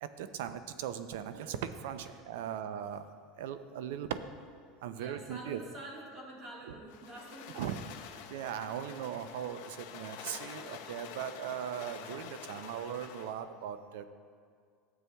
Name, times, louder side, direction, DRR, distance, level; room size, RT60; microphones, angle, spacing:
voice 1, 0.0-3.1 3.4-4.2 4.8-5.6 7.6-7.8 8.3-14.1, right 9 dB, 85° right, 11 dB, 0.4 m, -39 dB
voice 2, 4.9-8.3, right 1 dB, 40° right, -2 dB, 1.6 m, -48 dB
sound 1, 6.9-13.4, left 8 dB, 70° left, 0.6 m, -47 dB
12.5 x 7.8 x 2.3 m, 2.1 s
supercardioid pair, 150°, 0 cm